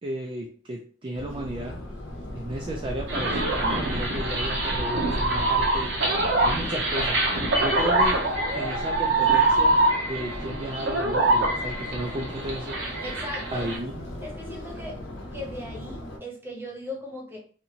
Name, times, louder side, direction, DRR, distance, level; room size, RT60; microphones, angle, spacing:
voice 1, 0.0-1.8 2.3-5.9 6.4-7.2 7.6-8.2 8.5-12.8 13.5-14.2, right 1 dB, 30° right, 0 dB, 0.3 m, -34 dB
Subway metro underground, 1.1-16.2, left 1 dB, 75° left, 0.8 m, -36 dB
sound 1, 3.1-13.8, right 2 dB, 65° right, 0.7 m, -25 dB
voice 2, 13.0-13.7 14.2-15.0 15.3-17.4, left 1 dB, 10° right, -2 dB, 0.8 m, -38 dB
2.7 x 2.5 x 2.8 m, 0.42 s
head